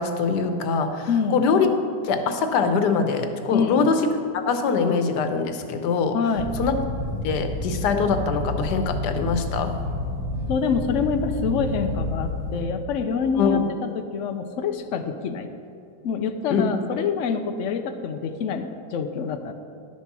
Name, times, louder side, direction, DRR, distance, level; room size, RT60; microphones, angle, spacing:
voice 1, 0.0-1.7 2.0-4.0 4.3-6.2 6.6-6.7 7.2-9.8 13.4-13.7 16.5-16.7, left 5 dB, 70° left, 7 dB, 1.4 m, -23 dB
voice 2, 1.1-1.4 3.5-3.9 6.1-6.5 10.5-15.5 16.0-19.5, left 5 dB, 85° left, 7 dB, 0.6 m, -26 dB
sound 1, 6.4-12.6, left 1 dB, 20° right, 2.2 m, -29 dB
11.0 x 7.3 x 6.0 m, 2.6 s
omnidirectional pair, 2.0 m